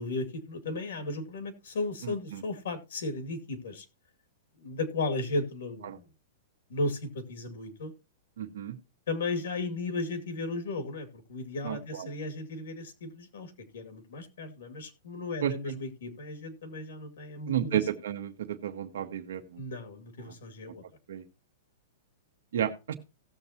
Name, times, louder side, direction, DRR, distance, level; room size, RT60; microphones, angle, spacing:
voice 1, 0.0-3.9 4.6-6.1 6.7-7.9 9.1-17.8 19.6-20.8, left 2 dB, 80° left, 2.2 m, -35 dB
voice 2, 2.0-2.4 5.8-6.0 8.4-8.8 11.6-12.1 15.4-15.5 17.5-19.6 20.2-20.3 21.1-21.2 22.5-23.0, right 10 dB, 75° right, 1.1 m, -32 dB
17.0 x 7.0 x 2.8 m
hypercardioid pair, 165°, 0 cm